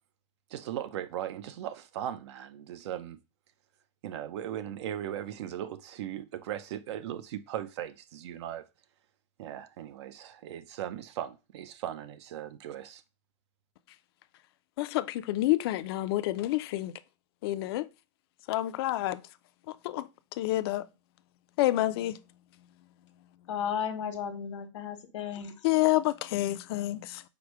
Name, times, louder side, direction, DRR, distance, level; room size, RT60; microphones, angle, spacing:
voice 1, 0.5-3.2 4.0-8.6 9.4-13.0, right 11 dB, 65° right, 0.6 m, -38 dB
voice 2, 14.8-16.9 17.4-17.9 18.5-19.2 19.8-20.1 20.4-20.9 21.6-22.2 25.6-27.2, left 16 dB, 55° left, 0.4 m, -28 dB
voice 3, 23.5-25.5, left 8 dB, 90° left, 1.1 m, -34 dB
4.8 x 2.1 x 4.5 m
supercardioid pair, 160°, 15 cm